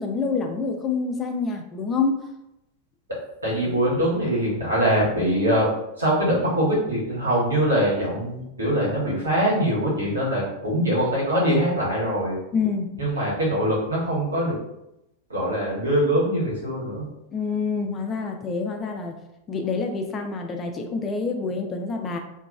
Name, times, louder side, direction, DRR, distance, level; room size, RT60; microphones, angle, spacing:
voice 1, 0.0-2.3 12.5-12.9 17.3-19.2 19.5-22.2, left 4 dB, 25° left, 4 dB, 0.3 m, -27 dB
voice 2, 3.4-5.7 6.0-12.4 13.0-14.5 15.3-17.1, equal, 75° right, -6 dB, 1.1 m, -23 dB
2.8 x 2.2 x 2.3 m, 0.87 s
figure-of-eight pair, 90°, 0 cm